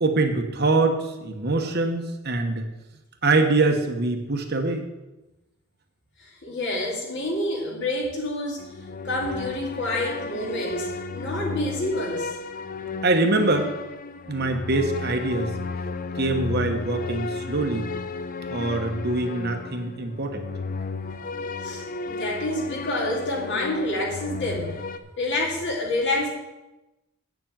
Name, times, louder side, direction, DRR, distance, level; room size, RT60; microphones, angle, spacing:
voice 1, 0.0-2.6 3.2-4.9 13.0-13.8 14.3-15.5 16.2-17.9 18.5-20.4, right 2 dB, 45° right, 5 dB, 1.1 m, -24 dB
voice 2, 6.2-8.7 9.0-12.3 21.6-24.8 25.2-26.3, left 1 dB, 55° left, -1 dB, 2.5 m, -28 dB
sound 1, 8.6-25.0, left 3 dB, 40° left, 0.5 m, -33 dB
8.5 x 7.2 x 7.5 m, 1.0 s
head